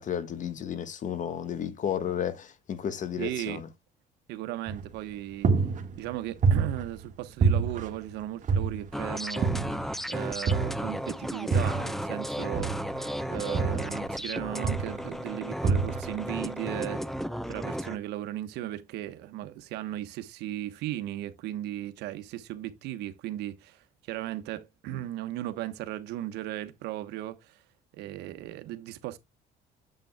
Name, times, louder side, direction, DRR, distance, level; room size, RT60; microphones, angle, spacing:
voice 1, 0.0-3.7, left 9 dB, 50° left, 1.3 m, -33 dB
voice 2, 3.2-3.6 4.3-5.5 6.0-9.5 10.1-12.9 13.3-17.0 17.5-27.6 27.9-29.2, right 14 dB, 90° right, 1.1 m, -36 dB
sound 1, 4.7-5.1 5.4-7.1 7.4-9.0 9.4-10.0 10.5-12.0 12.5-14.3 14.6-15.1 15.6-16.2, right 5 dB, 45° right, 1.5 m, -27 dB
sound 2, 8.9-18.0, equal, ahead, 0.5 m, -34 dB
9.0 x 7.6 x 2.2 m
cardioid pair, 110°, 17 cm